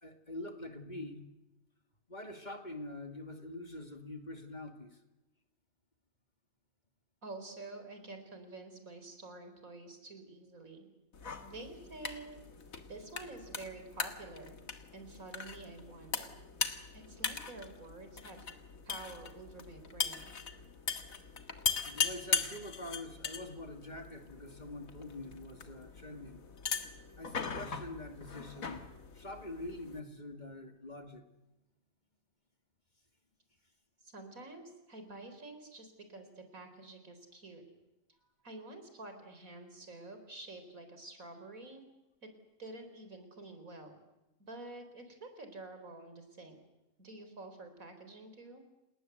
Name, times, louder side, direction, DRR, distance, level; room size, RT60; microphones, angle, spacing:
voice 1, 0.0-1.3 2.1-5.0 21.8-26.5 27.2-28.9 29.1-31.2, left 2 dB, 35° left, 5 dB, 2.5 m, -45 dB
voice 2, 7.2-10.9 11.4-12.4 12.9-14.6 14.9-16.3 16.9-18.5 18.8-20.3 34.0-37.6 38.4-41.8 42.2-42.3 42.6-43.9 44.4-46.6 47.0-48.6, right 2 dB, 80° right, 7 dB, 4.6 m, -49 dB
sound 1, 11.1-30.0, left 5 dB, 75° left, 2.1 m, -40 dB
29.0 x 20.0 x 8.0 m, 0.98 s
omnidirectional pair, 1.4 m